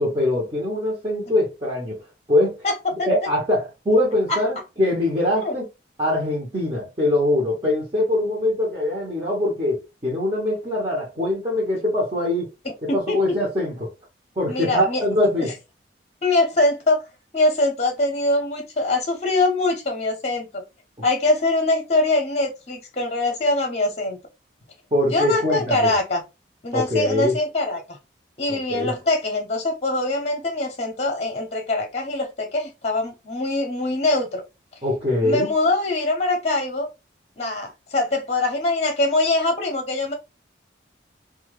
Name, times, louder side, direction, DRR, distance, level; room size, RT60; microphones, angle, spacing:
voice 1, 0.0-2.0 2.3-2.6 3.0-5.7 6.0-12.5 12.8-13.9 14.4-15.5 24.9-25.9 26.7-27.4 28.5-28.9 34.8-35.5, left 1 dB, 25° right, 0.8 m, -23 dB
voice 2, 2.6-3.1 4.3-4.4 5.4-5.6 12.9-13.4 14.5-15.0 15.4-15.5 16.2-17.0 17.3-20.6 21.0-24.2 25.1-26.2 26.6-28.0 28.4-34.4 35.2-36.9 37.4-40.1, left 2 dB, 35° left, 0.7 m, -23 dB
2.7 x 2.3 x 3.1 m
head